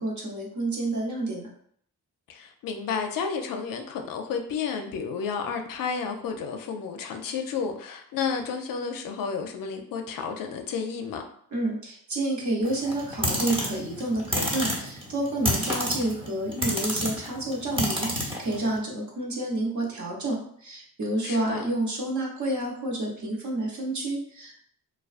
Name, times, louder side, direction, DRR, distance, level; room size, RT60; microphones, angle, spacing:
voice 1, 0.0-1.5 11.5-24.6, right 2 dB, 50° right, -1 dB, 0.9 m, -29 dB
voice 2, 2.3-11.2 21.2-21.7, left 6 dB, 60° left, 4 dB, 0.5 m, -31 dB
sound 1, 12.7-18.7, equal, 15° right, 0.9 m, -29 dB
2.2 x 2.2 x 2.4 m, 0.62 s
supercardioid pair, 50°, 38 cm